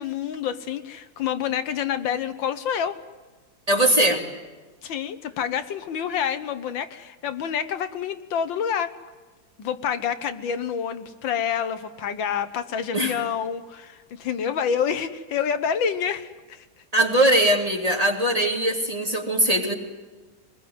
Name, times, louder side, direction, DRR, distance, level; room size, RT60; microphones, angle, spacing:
voice 1, 0.0-3.0 4.8-8.9 9.6-16.7, left 8 dB, 80° left, 10 dB, 1.8 m, -28 dB
voice 2, 3.7-4.2 12.9-13.1 16.9-19.7, right 1 dB, 20° right, 1 dB, 2.9 m, -21 dB
24.0 x 21.5 x 9.5 m, 1.3 s
omnidirectional pair, 2.1 m